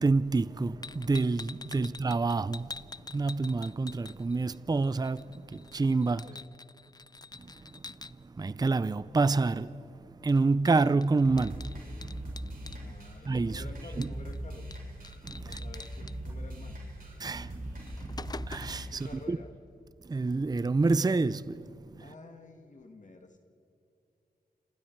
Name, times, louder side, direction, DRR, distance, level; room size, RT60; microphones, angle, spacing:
voice 1, 0.0-2.7 3.1-5.3 5.5-6.3 7.4-7.8 8.2-9.8 10.2-11.7 13.3-13.6 14.0-14.1 15.2-15.6 17.2-17.9 18.2-19.4 20.1-22.0, right 3 dB, 25° right, 0.5 m, -28 dB
sound 1, 0.8-4.6 4.8-8.1 10.3-10.4 10.7-12.8 14.0-14.4 14.7-14.8 15.0-16.1 17.2-17.4 17.7-18.9, left 3 dB, 25° left, 0.5 m, -46 dB
sound 2, 11.2-19.2, right 1 dB, 60° right, 6.8 m, -40 dB
voice 2, 12.8-14.7 15.4-16.8 19.0-19.5 22.0-23.4, left 3 dB, 50° left, 1.9 m, -50 dB
29.0 x 27.0 x 4.6 m
wide cardioid pair, 75°, 17 cm